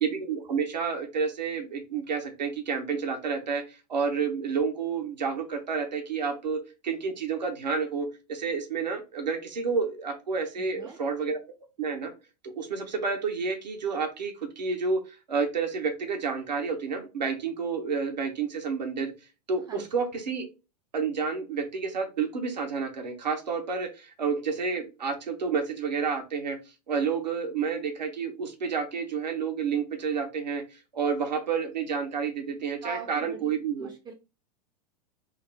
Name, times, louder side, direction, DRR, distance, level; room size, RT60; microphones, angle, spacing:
voice 1, 0.0-11.4 11.8-12.1 12.4-19.1 19.5-20.5 20.9-26.6 26.9-33.9, right 5 dB, 85° right, 4 dB, 0.9 m, -30 dB
voice 2, 10.6-11.0 19.7-19.9 32.8-34.1, right 5 dB, 20° right, 6 dB, 0.4 m, -42 dB
3.6 x 2.0 x 3.3 m, 0.30 s
hypercardioid pair, 100°, 21 cm